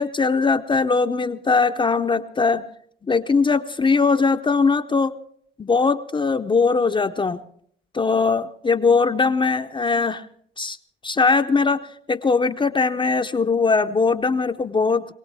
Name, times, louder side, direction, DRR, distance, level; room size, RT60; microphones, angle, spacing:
voice 1, 0.0-2.7 3.0-5.1 5.6-7.4 7.9-10.3 10.6-10.8 11.0-15.1, left 4 dB, 25° left, 6 dB, 0.6 m, -20 dB
23.0 x 17.5 x 3.4 m, 0.63 s
cardioid pair, 90°, 20 cm